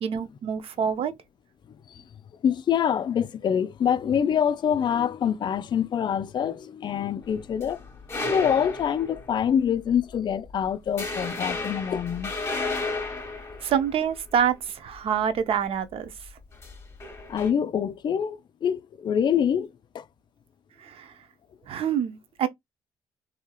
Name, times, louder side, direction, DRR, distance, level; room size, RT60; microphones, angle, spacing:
voice 1, 0.0-1.1 13.6-16.1 20.8-21.1 21.7-22.5, right 8 dB, 60° right, 0.6 m, -26 dB
voice 2, 2.4-7.8 8.3-12.3 17.3-19.7 19.9-20.0, left 8 dB, 45° left, 0.4 m, -25 dB
sound 1, 7.2-9.5 9.9-10.1 10.5-10.6 11.0-14.5 16.5-17.5, left 3 dB, 25° left, 1.1 m, -33 dB
2.8 x 2.7 x 2.3 m
hypercardioid pair, 55°, 11 cm